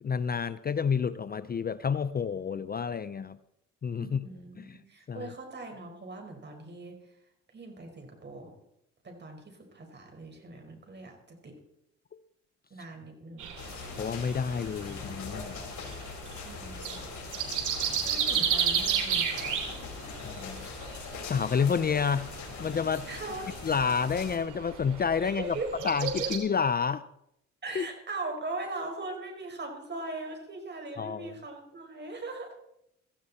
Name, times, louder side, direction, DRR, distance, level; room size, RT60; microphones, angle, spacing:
voice 1, 0.0-3.4 3.8-4.3 4.6-4.8 5.1-5.3 14.0-15.6 20.2-20.7 21.2-22.3 22.6-23.1 23.6-25.6 25.8-27.0 27.7-27.9 31.0-31.3, left 6 dB, 30° left, 14 dB, 0.6 m, -29 dB
voice 2, 4.0-7.0 7.5-8.5 9.0-11.6 12.7-13.5 16.4-17.0 18.0-19.6 23.1-23.5 25.2-26.3 27.6-32.5, right 2 dB, 35° right, 3 dB, 5.0 m, -40 dB
sound 1, 13.4-26.4, right 8 dB, 80° right, 3.0 m, -34 dB
sound 2, 13.6-24.4, left 6 dB, 70° left, 4.2 m, -42 dB
16.5 x 15.0 x 4.2 m, 0.78 s
cardioid pair, 90°, 30 cm